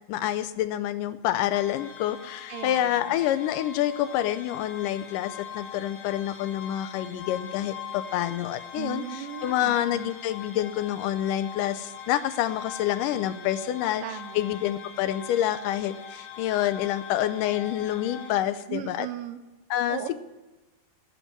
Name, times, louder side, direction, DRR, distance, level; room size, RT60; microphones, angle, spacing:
voice 1, 0.1-14.0 14.4-19.1 19.7-20.0, left 12 dB, 85° left, 13 dB, 2.2 m, -27 dB
sound 1, 1.5-18.3, left 7 dB, 50° left, 1.8 m, -42 dB
voice 2, 2.5-3.1 8.7-10.1 14.0-14.4 18.7-19.4 19.9-20.2, right 12 dB, 80° right, 8 dB, 2.6 m, -37 dB
12.0 x 8.1 x 8.9 m, 1.1 s
omnidirectional pair, 3.8 m